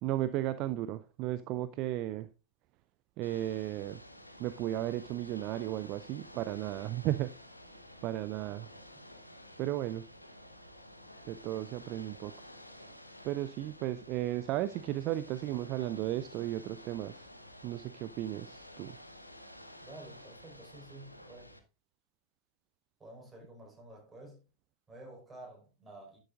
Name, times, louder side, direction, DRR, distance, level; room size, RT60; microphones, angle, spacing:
voice 1, 0.0-2.3 3.2-4.0 4.4-7.3 8.0-8.7 9.6-10.1 11.2-12.3 13.2-17.3 17.6-19.0, right 14 dB, 40° right, 0.4 m, -35 dB
Ocean / Boat Water vehicle, 3.2-21.6, left 1 dB, 85° left, 1.0 m, -52 dB
voice 2, 19.8-21.6 23.0-24.4 24.9-26.2, right 2 dB, 10° right, 5.0 m, -51 dB
11.0 x 7.9 x 2.6 m
figure-of-eight pair, 90°, 0 cm